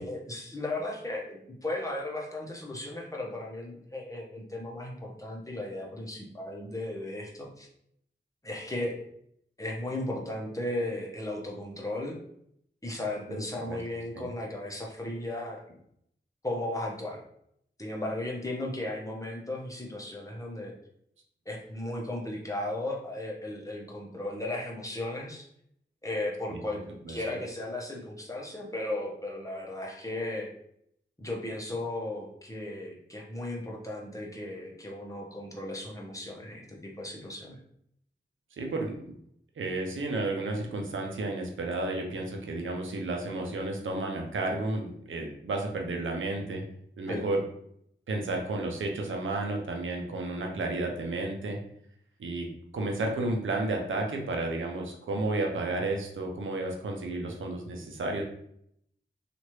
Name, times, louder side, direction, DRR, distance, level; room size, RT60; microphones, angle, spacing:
voice 1, 0.0-7.7 8.4-9.0 9.6-12.2 12.8-15.6 16.4-17.2 17.8-20.7 21.5-25.5 26.0-26.8 27.1-30.5 31.2-37.6 47.1-47.3, left 1 dB, 15° left, -1 dB, 0.9 m, -35 dB
voice 2, 38.6-39.1 39.6-46.6 47.0-47.4 48.1-51.6 52.2-52.5 52.7-58.2, right 2 dB, 90° right, 2 dB, 0.6 m, -32 dB
3.0 x 2.5 x 3.0 m, 0.71 s
cardioid pair, 45°, 20 cm